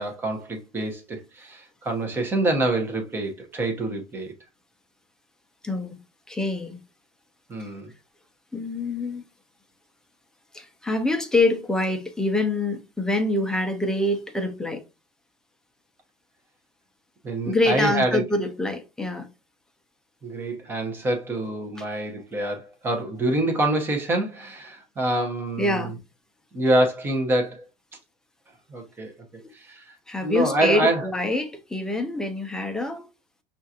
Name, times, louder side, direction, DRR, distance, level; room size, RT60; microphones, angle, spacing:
voice 1, 0.0-4.3 7.5-7.9 17.2-18.2 20.2-25.9 26.5-27.7 28.7-29.1 29.5-31.1, right 1 dB, 20° right, 0.9 m, -26 dB
voice 2, 5.6-6.0 6.3-6.8 7.6-7.7 8.5-9.2 10.5-14.8 17.5-19.3 25.6-25.9 29.4-29.5 30.1-33.1, left 2 dB, 5° left, 0.5 m, -25 dB
5.5 x 2.5 x 2.7 m
cardioid pair, 155°, 12 cm